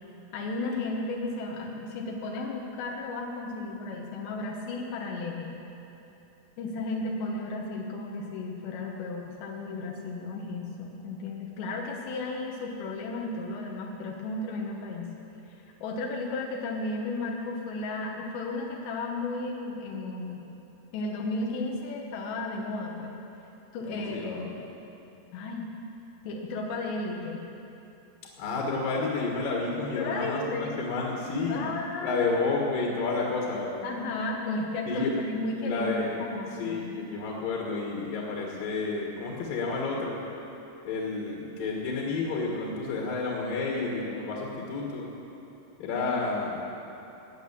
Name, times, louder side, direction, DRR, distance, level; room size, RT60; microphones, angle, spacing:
voice 1, 0.3-5.5 6.6-15.1 15.5-20.5 20.9-23.2 23.7-24.6 25.3-25.7 26.2-27.4 30.0-30.7 31.5-32.3 33.8-37.0 45.9-46.1, left 2 dB, 90° left, -1 dB, 3.5 m, -34 dB
voice 2, 23.9-24.5 28.4-31.7 32.0-33.9 34.9-35.1 35.7-36.3 36.6-40.2 40.8-45.1 45.8-46.6, left 3 dB, 60° left, -2 dB, 3.1 m, -30 dB
19.0 x 9.4 x 7.4 m, 3.0 s
omnidirectional pair, 4.9 m